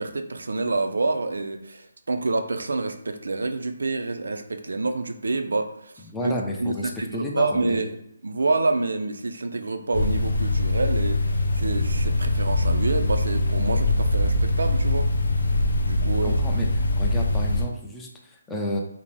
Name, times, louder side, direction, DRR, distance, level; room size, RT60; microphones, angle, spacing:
voice 1, 0.0-8.0 8.2-15.1 15.9-16.3, right 3 dB, 80° right, 7 dB, 0.3 m, -27 dB
voice 2, 6.1-7.8 16.2-16.7 17.0-18.8, left 1 dB, 5° left, -1 dB, 0.3 m, -31 dB
sound 1, 9.9-17.7, left 1 dB, 80° left, 0.4 m, -23 dB
2.5 x 2.0 x 3.1 m, 0.74 s
hypercardioid pair, 165°, 0 cm